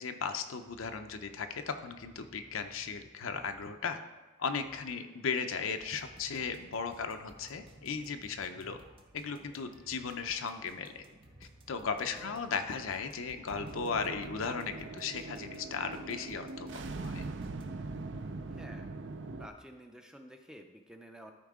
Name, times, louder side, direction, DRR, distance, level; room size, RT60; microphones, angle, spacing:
voice 1, 0.0-4.0 4.4-8.8 9.1-11.0 11.7-17.2, left 5 dB, 75° left, 7 dB, 0.6 m, -36 dB
sound 1, 0.6-19.9, equal, 75° right, 2.1 m, -61 dB
sound 2, 5.8-18.0, right 1 dB, 25° right, 0.8 m, -59 dB
voice 2, 12.1-12.5 12.8-12.9 18.5-18.9 19.4-21.3, right 1 dB, 5° right, 4 dB, 0.4 m, -51 dB
sound 3, 13.5-19.5, right 3 dB, 55° right, 0.5 m, -42 dB
13.0 x 4.7 x 3.7 m, 1.2 s
head